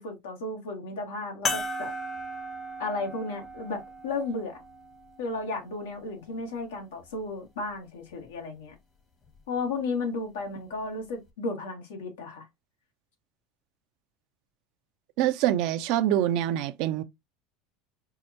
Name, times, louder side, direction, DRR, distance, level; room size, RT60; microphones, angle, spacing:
voice 1, 0.0-1.9 2.8-4.6 5.2-8.7 9.5-12.4, left 3 dB, 85° left, 1.4 m, -34 dB
sound 1, 1.5-6.3 7.0-7.1 9.3-9.4, left 1 dB, 40° left, 1.1 m, -36 dB
voice 2, 15.2-17.0, right 12 dB, 65° right, 0.5 m, -25 dB
4.6 x 2.1 x 2.7 m
hypercardioid pair, 95°, 0 cm